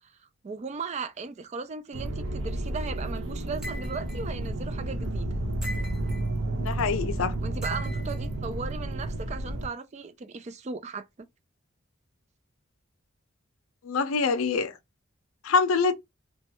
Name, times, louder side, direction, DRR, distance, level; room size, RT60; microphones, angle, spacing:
voice 1, 0.4-5.3 7.2-11.1, right 4 dB, 35° right, 0.3 m, -37 dB
sound 1, 1.9-9.7, right 1 dB, 70° right, 0.6 m, -31 dB
sound 2, 3.6-4.2 5.6-6.3 7.6-8.2, equal, 5° right, 0.6 m, -40 dB
voice 2, 6.6-7.3 13.8-14.7 15.4-15.9, left 5 dB, 85° left, 0.5 m, -25 dB
3.1 x 2.2 x 2.8 m
head